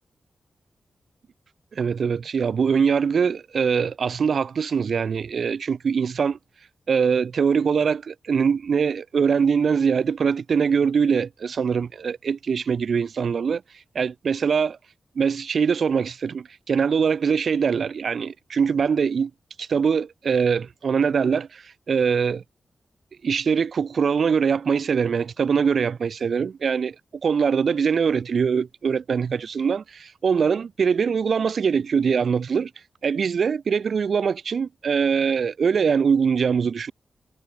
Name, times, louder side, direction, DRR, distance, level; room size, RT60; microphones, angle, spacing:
voice 1, 1.7-6.4 6.9-13.6 13.9-14.8 15.2-19.3 19.6-22.4 23.2-26.9 27.2-32.7 33.0-36.9, right 6 dB, 65° right, 2.5 m, -22 dB
wide cardioid pair, 120°, 0 cm